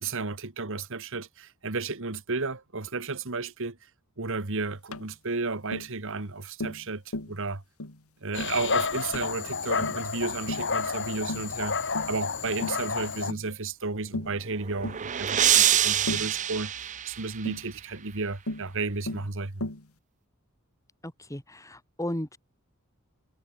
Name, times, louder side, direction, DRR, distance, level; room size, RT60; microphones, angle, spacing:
voice 1, 0.0-3.8 4.2-7.6 8.2-19.7, right 3 dB, 65° right, 1.8 m, -33 dB
Tap, 4.9-5.1 5.7-5.9 6.6-6.8 7.1-7.4 7.8-8.0 8.4-8.6 9.1-9.3 9.8-10.1 10.5-10.7 11.3-11.5 11.9-12.2 12.6-12.8 13.3-13.5 14.1-14.4 14.8-15.0 16.1-16.3 17.4-17.7 18.5-18.7 19.1-19.3 19.6-19.9, left 1 dB, 85° left, 3.2 m, -35 dB
Dog, 8.3-13.3, left 5 dB, 60° left, 5.8 m, -30 dB
sound 1, 14.3-17.7, right 11 dB, 35° right, 0.5 m, -26 dB
voice 2, 21.0-22.4, left 1 dB, 15° left, 3.4 m, -35 dB
head